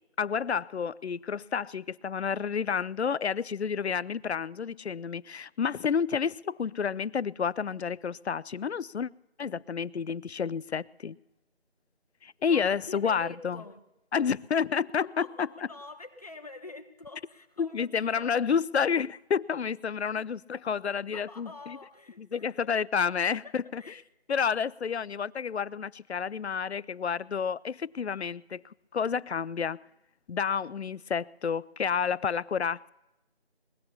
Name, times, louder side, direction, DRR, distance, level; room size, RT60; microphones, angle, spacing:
voice 1, 0.2-9.1 9.4-11.2 12.2-13.6 14.1-15.5 17.6-21.8 22.2-23.8 24.3-28.6 28.9-29.8 30.3-32.9, left 6 dB, 90° left, 0.5 m, -30 dB
voice 2, 12.4-13.8 15.0-18.3 20.0-20.2 21.1-22.7 23.4-24.0, left 3 dB, 35° left, 1.2 m, -47 dB
22.0 x 17.0 x 2.8 m
figure-of-eight pair, 170°, 32 cm